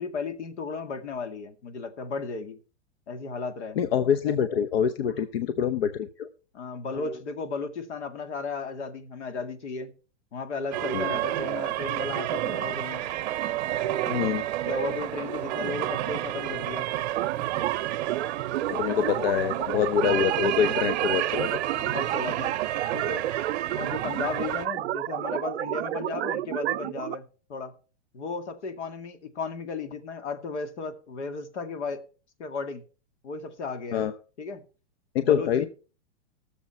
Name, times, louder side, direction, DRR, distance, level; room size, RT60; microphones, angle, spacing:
voice 1, 0.0-2.6 3.1-3.8 6.5-9.9 10.3-13.1 14.7-16.9 19.9-20.3 21.7-22.6 22.9-23.3 23.8-27.2 27.5-27.7 28.1-32.0 32.4-32.8 33.2-34.1 34.4-34.6 35.2-35.7, left 4 dB, 80° left, 8 dB, 2.2 m, -35 dB
voice 2, 3.8-6.3 6.9-7.1 10.9-11.1 14.1-14.5 18.7-21.6 33.9-34.1 35.1-35.6, left 8 dB, 60° left, 11 dB, 0.9 m, -25 dB
sound 1, 10.7-24.7, right 13 dB, 40° right, 0.8 m, -30 dB
sound 2, 17.2-27.1, right 14 dB, 70° right, 0.5 m, -31 dB
17.5 x 7.1 x 4.4 m, 0.37 s
supercardioid pair, 165°, 34 cm